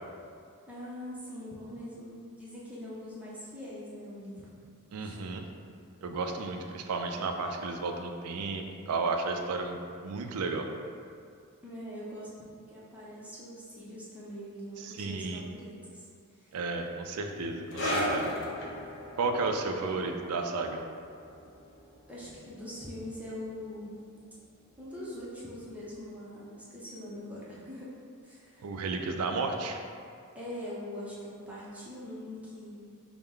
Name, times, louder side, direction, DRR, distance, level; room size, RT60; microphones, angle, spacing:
voice 1, 0.7-4.5 5.0-5.2 11.6-12.3 12.7-16.0 16.4-16.6 22.1-24.0 24.8-27.9 28.2-28.7 30.3-32.7, left 1 dB, 5° right, -8 dB, 0.6 m, -42 dB
voice 2, 4.9-5.4 6.0-10.7 14.8-15.4 16.5-18.4 19.2-20.8 28.6-29.8, right 3 dB, 70° right, 4 dB, 0.4 m, -33 dB
sound 1, 17.7-24.7 25.0-25.2 25.9-26.0, equal, 60° left, 0.6 m, -37 dB
4.4 x 2.1 x 3.6 m, 2.3 s
head